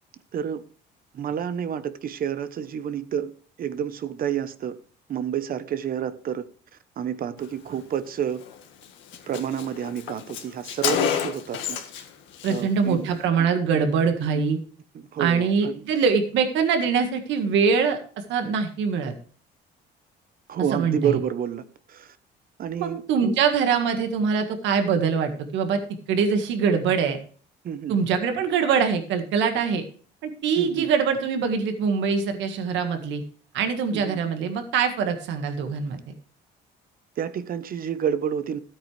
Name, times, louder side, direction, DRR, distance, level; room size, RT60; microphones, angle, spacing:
voice 1, 0.3-0.6 1.1-3.3 3.6-4.8 5.1-6.5 7.0-8.4 9.3-12.0 12.5-13.5 14.2-14.4 14.9-15.8 20.5-22.2 22.6-23.4 27.6-28.0 30.6-30.9 33.9-34.2 37.2-38.6, right 9 dB, 50° right, 1.0 m, -29 dB
Car, 8.4-8.5 8.8-8.9 9.1-12.1 12.3-12.6, left 9 dB, 90° left, 1.7 m, -29 dB
voice 2, 12.4-14.6 15.2-18.0 18.3-19.1 20.7-21.1 22.7-25.8 26.1-27.2 27.9-29.8 30.2-33.2 33.5-36.0, right 6 dB, 75° right, 1.8 m, -23 dB
13.0 x 8.7 x 3.3 m
cardioid pair, 110°, 19 cm